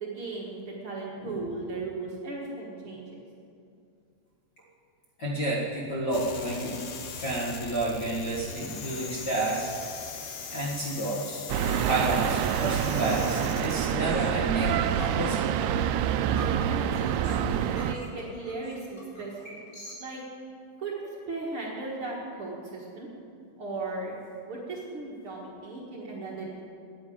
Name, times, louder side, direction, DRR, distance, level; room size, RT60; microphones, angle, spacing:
voice 1, 0.0-3.2 16.6-19.6 20.0-20.2 20.8-20.9 21.3-23.1 23.6-24.1 24.5-26.6, right 3 dB, 50° right, -3 dB, 2.0 m, -37 dB
voice 2, 5.2-6.8 7.1-9.7 10.5-15.5, right 1 dB, 40° left, -5 dB, 1.7 m, -30 dB
sound 1, 6.1-14.0, left 6 dB, 85° left, 1.2 m, -40 dB
sound 2, 11.5-17.9, right 9 dB, 85° right, 1.7 m, -27 dB
sound 3, 13.2-19.9, right 1 dB, 25° left, 3.9 m, -45 dB
10.0 x 10.0 x 8.7 m, 2.4 s
omnidirectional pair, 3.9 m